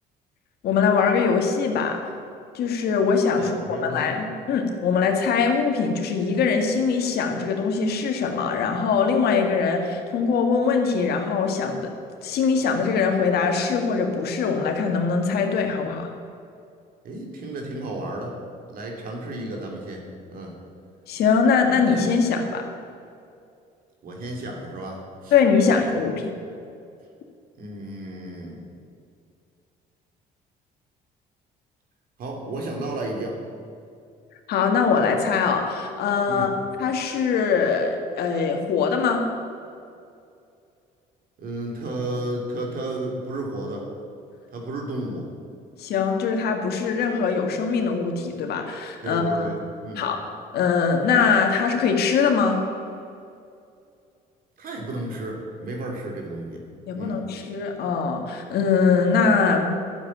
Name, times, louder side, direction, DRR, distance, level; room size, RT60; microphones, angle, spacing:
voice 1, 0.6-2.0 2.5-11.9 12.2-16.1 21.1-22.7 25.3-26.2 34.5-36.5 36.8-39.3 45.8-49.5 50.0-50.2 50.5-52.6 56.9-59.7, left 5 dB, 70° left, 3 dB, 1.8 m, -22 dB
voice 2, 3.4-4.1 17.0-18.4 18.7-20.0 20.3-20.6 24.0-25.3 25.7-25.8 26.4-26.5 27.6-28.6 32.2-33.4 36.3-36.5 41.4-43.9 44.5-45.3 49.0-49.6 49.8-50.0 54.6-56.6 56.9-57.2, right 1 dB, 60° right, 0 dB, 3.0 m, -32 dB
12.0 x 7.5 x 9.6 m, 2.4 s
cardioid pair, 110°, 17 cm